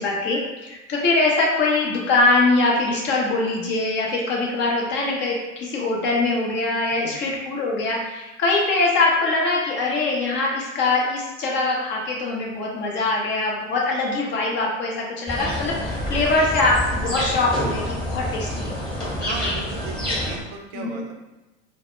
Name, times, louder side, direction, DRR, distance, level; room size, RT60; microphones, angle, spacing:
voice 1, 0.0-18.8 20.7-21.0, left 3 dB, 30° left, -2 dB, 0.6 m, -22 dB
sound 1, 15.3-20.4, left 1 dB, 10° left, 1.0 m, -27 dB
voice 2, 19.1-21.1, right 4 dB, 55° right, 2 dB, 0.5 m, -36 dB
2.1 x 2.0 x 3.1 m, 1.1 s
hypercardioid pair, 90°, 39 cm